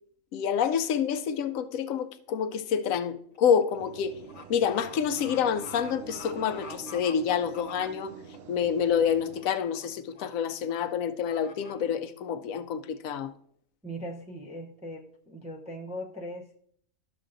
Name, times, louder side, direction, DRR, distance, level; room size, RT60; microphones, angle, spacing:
voice 1, 0.3-4.2 4.5-8.1 8.5-13.3, left 7 dB, 80° left, 1.0 m, -28 dB
sound 1, 2.3-2.5 2.9-8.4 8.8-9.1 9.4-9.9 10.1-10.3 10.7-10.9 11.3-11.7, left 4 dB, 65° left, 1.2 m, -47 dB
sound 2, 3.8-9.4, right 6 dB, 60° right, 0.7 m, -46 dB
voice 2, 13.8-16.6, equal, 10° right, 0.4 m, -39 dB
12.0 x 6.7 x 2.6 m
omnidirectional pair, 1.4 m